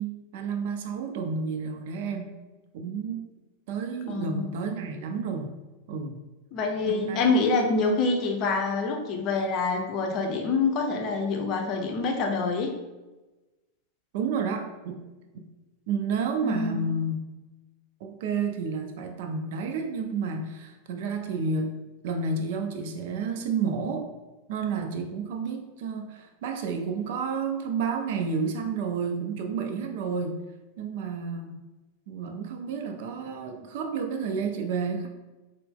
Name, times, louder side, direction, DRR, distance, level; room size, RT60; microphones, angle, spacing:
voice 1, 0.0-2.3 2.7-3.3 3.7-5.5 5.9-6.2 6.9-7.3 14.1-15.0 15.3-15.4 15.9-17.2 18.0-21.7 22.0-24.1 24.5-30.4 30.8-31.6 32.1-35.1, right 5 dB, 50° right, 4 dB, 0.4 m, -30 dB
voice 2, 4.1-4.5 6.5-12.7 16.4-16.8, left 3 dB, 35° left, 2 dB, 0.5 m, -26 dB
4.0 x 2.0 x 3.6 m, 1.1 s
figure-of-eight pair, 90°, 0 cm